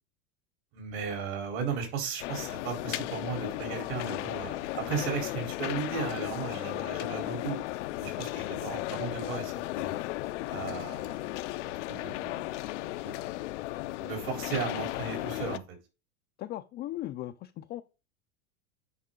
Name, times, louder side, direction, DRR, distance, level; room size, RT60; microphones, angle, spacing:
voice 1, 0.7-7.6 8.0-10.0 10.5-11.2 11.6-12.6 12.8-13.3 14.0-15.8, right 6 dB, 60° right, 4.2 m, -36 dB
sound 1, 2.2-15.6, left 17 dB, 80° left, 0.6 m, -35 dB
voice 2, 16.4-17.8, left 14 dB, 30° left, 0.4 m, -38 dB
9.5 x 5.3 x 3.8 m
supercardioid pair, 135°, 36 cm